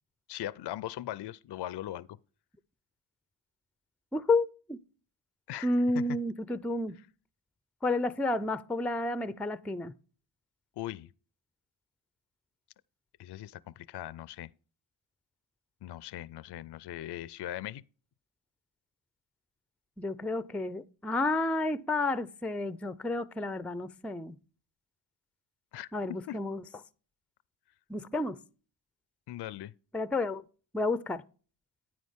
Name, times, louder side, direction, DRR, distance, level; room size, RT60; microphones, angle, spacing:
voice 1, 0.3-2.1 5.5-6.0 10.8-11.1 13.2-14.5 15.8-17.8 25.7-25.9 26.3-26.4 29.3-29.7, left 13 dB, 60° left, 0.5 m, -39 dB
voice 2, 4.1-4.8 5.6-7.0 7.8-9.9 20.0-24.4 25.9-26.6 27.9-28.4 29.9-30.4 30.7-31.2, left 2 dB, 5° left, 0.4 m, -31 dB
9.5 x 9.2 x 3.5 m
cardioid pair, 65°, 48 cm